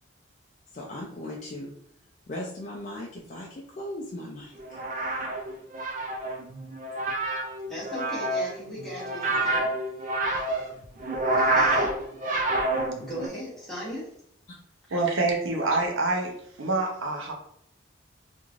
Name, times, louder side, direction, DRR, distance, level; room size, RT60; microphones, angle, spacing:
voice 1, 0.7-1.7 2.3-4.8 14.5-14.6, left 1 dB, 40° left, -3 dB, 0.3 m, -38 dB
sound 1, 4.6-13.3, right 2 dB, 40° right, 0.3 m, -28 dB
voice 2, 7.7-9.7 11.5-11.9 13.0-14.1, equal, ahead, -8 dB, 1.0 m, -37 dB
voice 3, 14.9-16.3 16.6-17.3, right 2 dB, 80° right, 1 dB, 0.6 m, -26 dB
3.0 x 2.5 x 2.3 m, 0.71 s
head